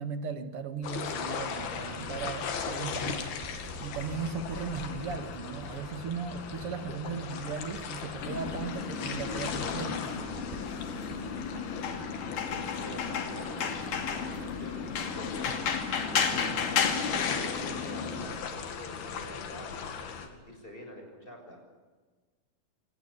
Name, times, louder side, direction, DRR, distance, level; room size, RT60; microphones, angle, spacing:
voice 1, 0.0-10.1, right 5 dB, 50° right, 8 dB, 2.1 m, -37 dB
sound 1, 0.8-20.3, left 6 dB, 85° left, 4.1 m, -38 dB
Writing, 2.0-6.9 7.2-11.9, right 3 dB, 80° right, 6.3 m, -47 dB
sound 2, 8.2-18.3, left 6 dB, 60° left, 3.8 m, -33 dB
voice 2, 12.4-15.5 15.9-16.9 17.2-19.9 20.2-21.6, left 1 dB, 15° left, 3 dB, 6.4 m, -47 dB
25.5 x 19.0 x 8.2 m, 1.4 s
omnidirectional pair, 4.3 m